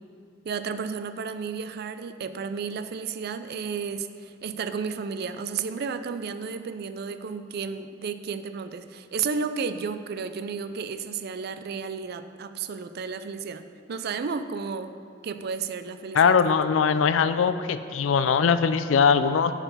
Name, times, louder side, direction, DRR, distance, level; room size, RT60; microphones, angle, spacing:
voice 1, 0.4-13.6 13.9-14.9 15.2-16.4, right 5 dB, 55° right, 11 dB, 0.4 m, -32 dB
voice 2, 16.1-19.5, left 6 dB, 85° left, 12 dB, 0.4 m, -21 dB
8.8 x 4.8 x 5.5 m, 2.4 s
head